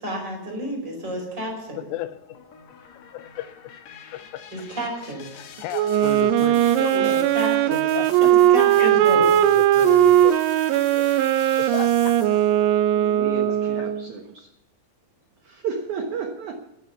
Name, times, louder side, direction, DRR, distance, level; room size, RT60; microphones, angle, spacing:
voice 1, 0.0-1.9 4.5-5.3 6.9-7.8 8.5-9.3, right 1 dB, 25° right, 1 dB, 5.4 m, -30 dB
sound 1, 1.5-12.6, left 7 dB, 60° left, 2.0 m, -44 dB
voice 2, 1.8-2.1 3.1-3.6 4.1-4.4 5.4-7.1 7.7-8.1 8.8-10.4 11.0-11.1 11.6-12.2, left 14 dB, 85° left, 14 dB, 2.8 m, -33 dB
Wind instrument woodwind instrument, 5.7-14.1, right 11 dB, 85° right, 2.9 m, -19 dB
voice 3, 12.9-14.5 15.4-16.6, right 6 dB, 65° right, 4 dB, 1.9 m, -32 dB
13.0 x 11.5 x 7.1 m, 0.94 s
omnidirectional pair, 4.9 m